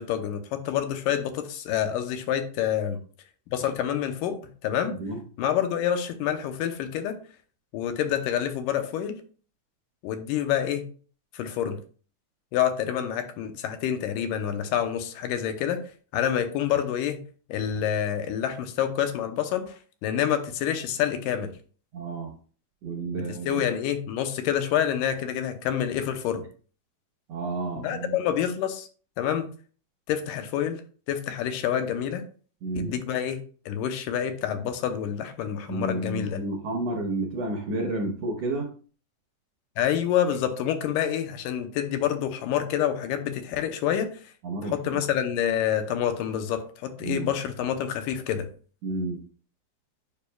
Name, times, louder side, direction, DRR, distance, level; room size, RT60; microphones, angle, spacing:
voice 1, 0.0-3.0 3.5-4.9 5.4-7.2 7.7-9.2 10.0-10.9 11.3-11.8 12.5-15.8 16.1-17.2 17.5-19.8 20.0-21.5 23.1-26.4 27.8-28.9 29.2-29.5 30.1-30.8 31.1-32.2 32.8-36.4 39.8-44.1 44.6-48.5, left 9 dB, 85° left, 8 dB, 2.3 m, -27 dB
voice 2, 21.9-22.3 22.8-23.6 27.3-28.2 32.6-32.9 35.7-38.7 44.4-45.0 47.0-47.3 48.8-49.2, right 2 dB, 75° right, 2 dB, 1.5 m, -31 dB
8.9 x 5.3 x 2.2 m, 0.41 s
omnidirectional pair, 3.8 m